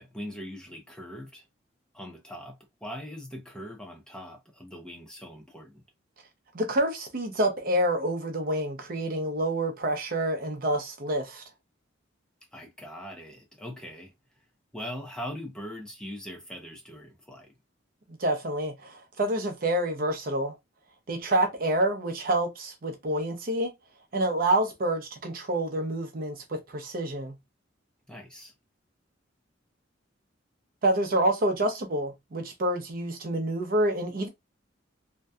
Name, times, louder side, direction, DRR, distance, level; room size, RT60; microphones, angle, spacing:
voice 1, 0.0-1.4 1.9-5.8 12.5-14.1 14.7-17.5 28.1-28.5, equal, 5° left, 0.5 m, -41 dB
voice 2, 6.5-11.4 18.2-20.5 21.1-23.7 24.1-27.4 30.8-34.3, right 1 dB, 50° right, 0.6 m, -27 dB
2.6 x 2.2 x 2.2 m
head